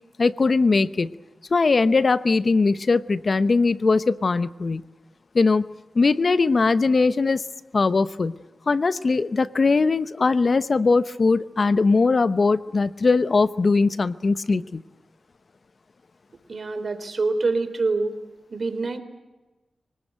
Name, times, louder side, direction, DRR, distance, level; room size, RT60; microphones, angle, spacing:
voice 1, 0.2-1.1 1.5-4.8 5.3-5.6 5.9-7.4 7.7-8.4 8.7-14.8, left 4 dB, 55° left, 15 dB, 0.8 m, -20 dB
voice 2, 16.5-18.1 18.5-19.0, right 3 dB, 60° right, 9 dB, 3.4 m, -25 dB
24.5 x 18.5 x 9.1 m, 1.1 s
cardioid pair, 45°, 0 cm